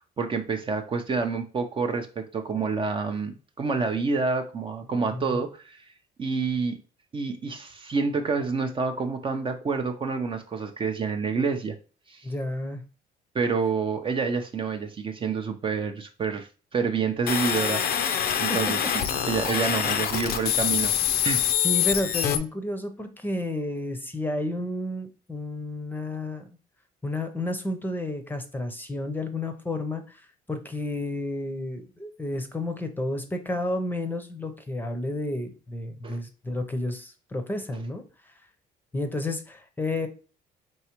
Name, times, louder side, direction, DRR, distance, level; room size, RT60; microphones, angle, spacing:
voice 1, 0.0-5.9 6.2-6.8 7.1-11.7 12.1-12.3 13.3-17.9 18.4-18.8 19.3-20.9 21.2-21.5 36.0-36.2, right 5 dB, 30° right, 5 dB, 0.6 m, -28 dB
voice 2, 5.1-5.4 12.2-12.8 18.5-18.6 21.6-26.4 27.0-38.0 38.9-40.1, left 2 dB, 10° left, 7 dB, 0.7 m, -31 dB
sound 1, 17.3-22.4, left 9 dB, 65° left, 0.6 m, -25 dB
4.6 x 3.3 x 2.9 m, 0.36 s
cardioid pair, 110°, 17 cm